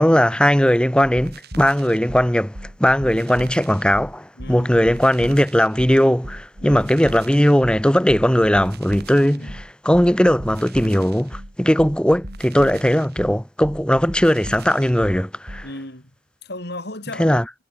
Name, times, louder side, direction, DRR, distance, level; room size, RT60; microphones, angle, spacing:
voice 1, 0.0-15.6 17.2-17.4, equal, 5° left, 1.2 m, -18 dB
sound 1, 1.0-15.7, right 1 dB, 55° right, 7.1 m, -37 dB
voice 2, 4.4-4.7 6.6-6.9 9.3-9.5 15.6-16.1 16.4-17.4, left 1 dB, 55° left, 7.4 m, -35 dB
head